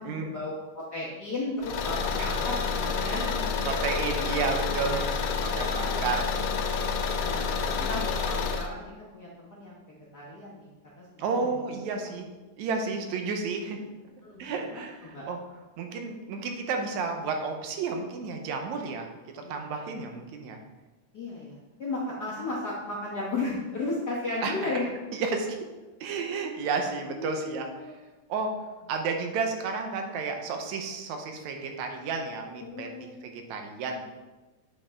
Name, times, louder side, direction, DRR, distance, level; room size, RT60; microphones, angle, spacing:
voice 1, 0.0-3.2 5.9-6.2 7.2-10.7 11.0-12.3 14.2-14.4 14.7-15.3 19.4-19.5 19.9-20.0 21.1-24.9 27.1-28.0 32.6-33.2, left 2 dB, 60° left, -7 dB, 1.0 m, -35 dB
Car / Engine, 1.6-8.7, left 5 dB, 90° left, 2.2 m, -29 dB
voice 2, 3.0-5.1 5.4-6.3 7.6-7.9 11.2-12.3 12.6-13.8 14.4-15.4 15.8-19.1 19.3-20.6 24.4-24.5 25.1-25.6 26.0-27.7 28.3-28.5 28.9-34.0, right 4 dB, 70° right, 4 dB, 2.0 m, -32 dB
8.8 x 5.4 x 3.7 m, 1.1 s
omnidirectional pair, 3.7 m